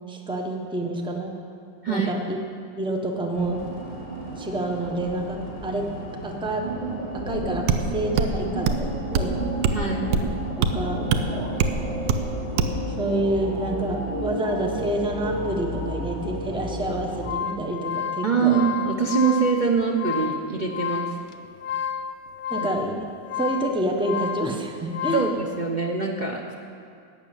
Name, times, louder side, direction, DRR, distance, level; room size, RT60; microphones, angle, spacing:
voice 1, 0.1-1.3 1.9-2.4 2.8-3.7 4.4-5.8 6.2-6.6 7.1-9.4 10.1-10.2 10.6-11.1 13.0-18.6 22.5-23.1 23.3-25.2, right 1 dB, 5° right, 1 dB, 0.8 m, -28 dB
sound 1, 3.3-17.3, right 1 dB, 35° left, 2.9 m, -32 dB
sound 2, 7.3-7.4 7.7-7.8 8.2-8.3 8.7-8.9 9.1-9.3 9.6-9.8 10.1-10.3 10.6-10.7 11.1-11.2 11.6-11.8 12.1-12.2 12.6-12.8, right 6 dB, 75° right, 1.3 m, -22 dB
voice 2, 9.7-10.1 18.2-21.2 22.5-22.7 25.1-26.5, right 5 dB, 50° right, 0 dB, 0.5 m, -24 dB
sound 3, 17.0-25.4, left 7 dB, 65° left, 0.9 m, -31 dB
12.0 x 7.4 x 9.0 m, 2.3 s
omnidirectional pair, 2.1 m